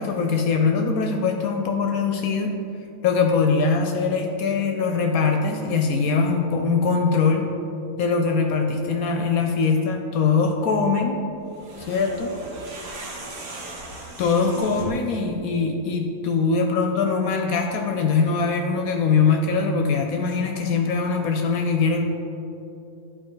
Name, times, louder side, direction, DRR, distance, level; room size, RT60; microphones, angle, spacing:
voice 1, 0.0-2.6 3.0-7.5 8.0-11.2 11.9-12.4 14.2-22.0, left 4 dB, 75° left, 3 dB, 1.0 m, -22 dB
sound 1, 11.5-15.1, right 2 dB, 75° right, 1.6 m, -37 dB
11.0 x 4.7 x 3.8 m, 2.8 s
omnidirectional pair, 1.6 m